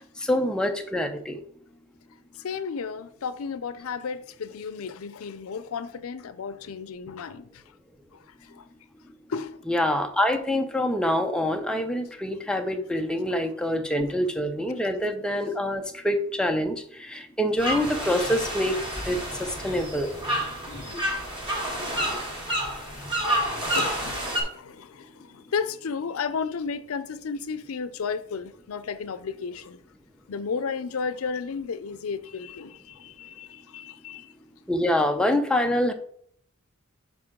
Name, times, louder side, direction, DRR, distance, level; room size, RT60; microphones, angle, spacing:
voice 1, 0.2-1.4 9.7-18.8 19.0-20.1 20.9-21.0 34.7-35.9, left 1 dB, 5° left, 0.6 m, -26 dB
voice 2, 2.4-7.6 8.1-8.7 9.3-9.6 20.7-21.1 22.0-22.2 22.5-29.8 30.3-34.3, left 5 dB, 90° left, 0.5 m, -34 dB
sound 1, 17.6-24.4, equal, 25° right, 2.0 m, -29 dB
6.2 x 5.3 x 3.7 m
head